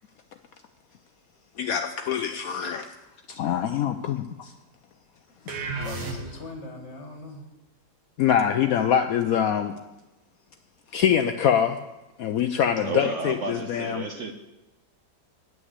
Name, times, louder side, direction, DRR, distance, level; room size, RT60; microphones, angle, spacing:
voice 1, 1.6-2.9 3.3-4.5 5.9-6.1 8.2-9.7 10.9-11.8 12.2-14.0, left 9 dB, 70° left, 7 dB, 0.9 m, -24 dB
voice 2, 5.4-7.4, left 2 dB, 45° left, 3 dB, 1.7 m, -41 dB
sound 1, 5.5-6.6, right 3 dB, 80° right, 2.0 m, -33 dB
voice 3, 12.8-14.3, right 4 dB, 55° right, 5 dB, 0.9 m, -32 dB
9.3 x 6.3 x 8.0 m, 1.0 s
omnidirectional pair, 1.8 m